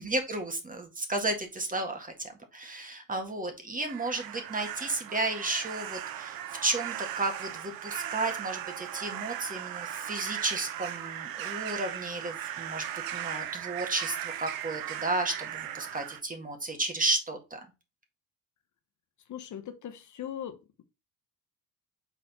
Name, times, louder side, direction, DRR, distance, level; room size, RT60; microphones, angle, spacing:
voice 1, 0.0-12.8 13.1-17.6, right 2 dB, 20° right, 1.9 m, -33 dB
sound 1, 3.9-16.2, right 11 dB, 65° right, 0.9 m, -37 dB
voice 2, 19.3-20.8, left 9 dB, 50° left, 1.0 m, -40 dB
6.0 x 4.2 x 4.2 m
cardioid pair, 100°, 38 cm